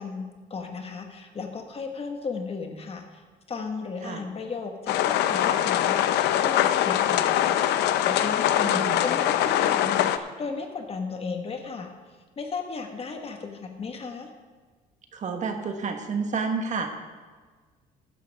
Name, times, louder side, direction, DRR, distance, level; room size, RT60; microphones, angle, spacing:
voice 1, 0.0-3.2 3.5-11.9 12.4-14.3, left 4 dB, 35° left, 4 dB, 1.5 m, -35 dB
sound 1, 4.9-10.2, left 11 dB, 80° left, 0.6 m, -23 dB
voice 2, 8.6-9.0 15.1-16.9, right 4 dB, 45° right, 5 dB, 1.4 m, -30 dB
14.5 x 10.5 x 3.6 m, 1.4 s
cardioid pair, 110°, 17 cm